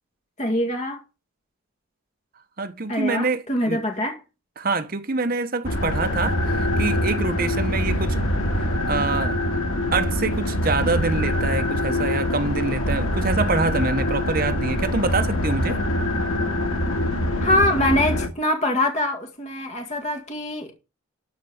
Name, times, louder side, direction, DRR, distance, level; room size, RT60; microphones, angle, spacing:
voice 1, 0.4-1.0 2.9-4.2 17.4-20.7, left 1 dB, 35° left, 2.0 m, -24 dB
voice 2, 2.6-3.8 4.6-8.2 8.6-9.4 9.9-15.8, right 3 dB, 45° right, 1.0 m, -25 dB
sound 1, 5.6-18.3, left 1 dB, 85° left, 2.1 m, -24 dB
13.0 x 4.6 x 7.1 m
head